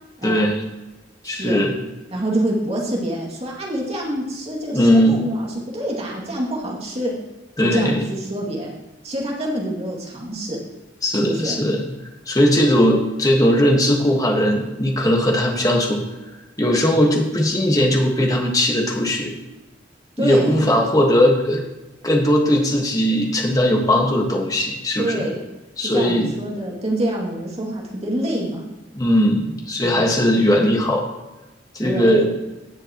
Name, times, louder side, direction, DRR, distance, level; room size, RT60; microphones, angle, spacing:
voice 1, 0.2-0.6 1.2-1.7 4.7-5.2 7.6-8.0 11.0-11.8 12.3-16.0 16.6-19.3 20.2-21.6 22.0-25.3 25.8-26.4 28.9-31.0 31.7-32.3, equal, 20° left, 1 dB, 1.5 m, -18 dB
voice 2, 1.2-1.6 2.1-7.1 7.6-8.7 9.0-10.6 11.2-11.6 20.2-20.8 25.0-25.4 25.8-28.6 29.8-30.1 31.8-32.4, right 1 dB, 35° right, -3 dB, 2.4 m, -26 dB
17.5 x 6.6 x 3.0 m, 1.1 s
head